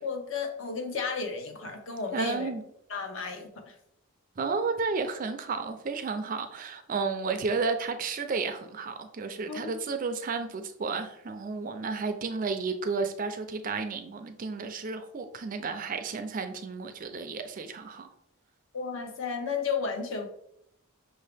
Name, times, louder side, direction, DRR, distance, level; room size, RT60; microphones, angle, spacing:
voice 1, 0.0-2.5 2.9-3.7 9.5-9.8 18.7-20.3, left 5 dB, 55° left, 5 dB, 0.7 m, -33 dB
voice 2, 2.1-2.6 4.4-18.1, right 4 dB, 35° right, 8 dB, 0.4 m, -32 dB
5.7 x 2.7 x 3.3 m, 0.75 s
head